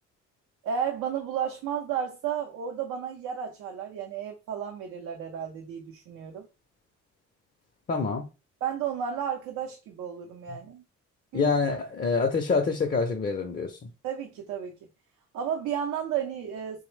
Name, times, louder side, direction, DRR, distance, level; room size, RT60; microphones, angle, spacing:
voice 1, 0.6-6.5 8.6-10.8 11.3-11.5 14.0-14.7 15.3-16.8, right 8 dB, 90° right, 0.6 m, -32 dB
voice 2, 7.9-8.3 10.5-10.6 11.3-13.8, left 4 dB, 30° left, 0.5 m, -26 dB
3.2 x 2.0 x 3.1 m
cardioid pair, 90°, 30 cm